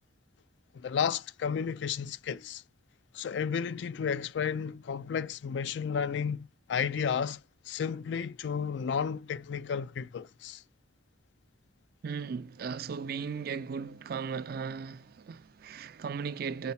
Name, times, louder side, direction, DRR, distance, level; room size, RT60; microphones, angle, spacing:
voice 1, 0.7-2.6 3.1-7.4 7.7-10.6, left 7 dB, 70° left, 0.3 m, -32 dB
voice 2, 12.0-16.7, right 6 dB, 55° right, 0.4 m, -37 dB
4.7 x 4.2 x 5.7 m
head